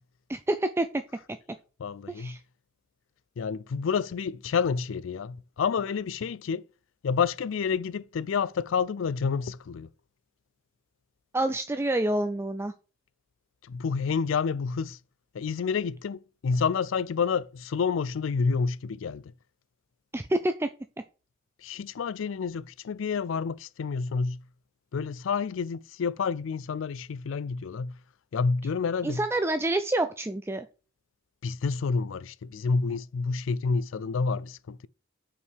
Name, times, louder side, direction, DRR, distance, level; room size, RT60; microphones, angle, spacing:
voice 1, 0.3-0.9 2.1-2.4 11.3-12.7 20.1-20.7 29.0-30.7, right 1 dB, 10° right, 0.4 m, -27 dB
voice 2, 1.8-2.4 3.4-6.6 7.0-9.9 13.7-15.0 15.3-19.2 21.6-24.4 24.9-28.0 28.3-29.2 31.4-34.9, left 5 dB, 70° left, 0.4 m, -29 dB
5.8 x 4.6 x 6.1 m
head